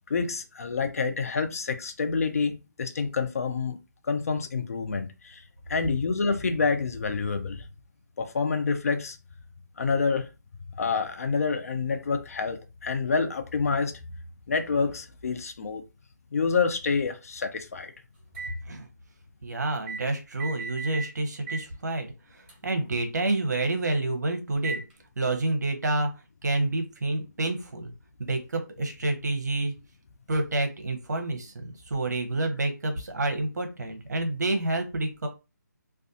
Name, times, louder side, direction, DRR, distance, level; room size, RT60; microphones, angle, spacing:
voice 1, 0.1-3.8 4.0-5.4 5.7-7.6 8.2-9.2 9.8-10.3 10.8-14.0 14.5-15.8 16.3-17.9, left 5 dB, 50° left, 0.5 m, -27 dB
sound 1, 18.3-18.6 19.9-20.0 20.4-21.1 21.5-21.7 22.5-22.6 24.6-24.9, right 4 dB, 40° right, 1.3 m, -35 dB
voice 2, 19.4-24.8 25.2-26.1 26.4-27.9 28.2-29.7 30.3-35.3, right 2 dB, 65° right, 0.8 m, -28 dB
2.4 x 2.3 x 2.6 m
figure-of-eight pair, 160°, 10 cm